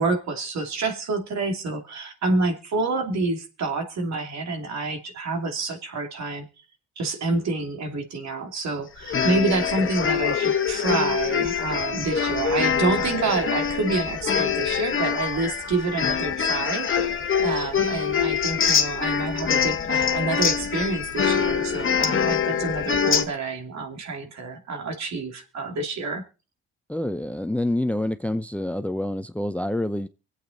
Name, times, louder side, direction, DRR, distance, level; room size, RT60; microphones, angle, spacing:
voice 1, 0.0-6.5 7.0-26.2, right 3 dB, 65° right, 2.7 m, -28 dB
sound 1, 9.0-23.2, left 7 dB, 40° left, 1.3 m, -24 dB
voice 2, 26.9-30.1, left 1 dB, 5° left, 0.6 m, -27 dB
24.5 x 8.3 x 3.9 m
cardioid pair, 90°, 30 cm